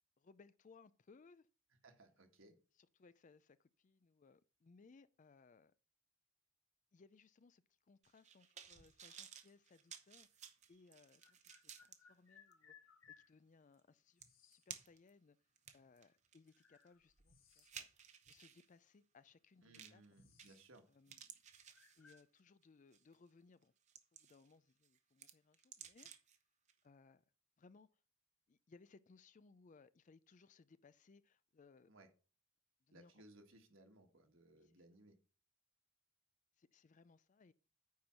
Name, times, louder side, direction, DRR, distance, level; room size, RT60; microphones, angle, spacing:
voice 1, 0.2-1.5 2.7-5.7 6.9-10.4 10.7-15.4 15.7-17.9 18.3-20.0 20.9-21.2 22.0-23.7 24.1-26.1 26.8-27.2 27.6-28.0 28.5-31.9 32.9-33.2 34.5-34.7 36.6-37.5, left 4 dB, 35° left, 0.4 m, -66 dB
voice 2, 1.8-2.6 19.6-20.9 31.9-32.1 32.9-35.2, right 2 dB, 60° right, 1.7 m, -63 dB
sound 1, 8.0-12.0 12.5-12.6 13.8-13.9 14.2-15.1 15.6-18.7 19.7-20.1 20.4-20.8 21.1-22.4 22.9-23.1 23.6-24.5 24.8-26.4 26.7-26.8, right 8 dB, 35° right, 0.8 m, -56 dB
sound 2, 10.0-10.1 11.2-13.3 14.2-14.7 15.8-15.9 16.5-17.9 18.2-18.4 19.2-19.3 19.6-20.7 20.9-21.2 21.7-22.3, left 7 dB, 60° left, 1.6 m, -66 dB
9.3 x 4.5 x 6.4 m
head